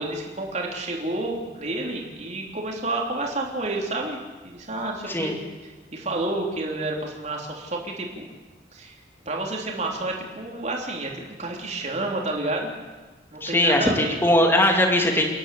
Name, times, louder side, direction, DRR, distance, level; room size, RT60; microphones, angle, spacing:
voice 1, 0.0-5.3 5.9-8.2 8.7-9.0 9.2-11.1 11.4-12.7 13.3-14.2, right 2 dB, 40° right, 0 dB, 3.4 m, -29 dB
voice 2, 13.4-15.3, left 1 dB, 15° left, 2 dB, 2.5 m, -20 dB
29.0 x 11.0 x 8.3 m, 1.3 s
head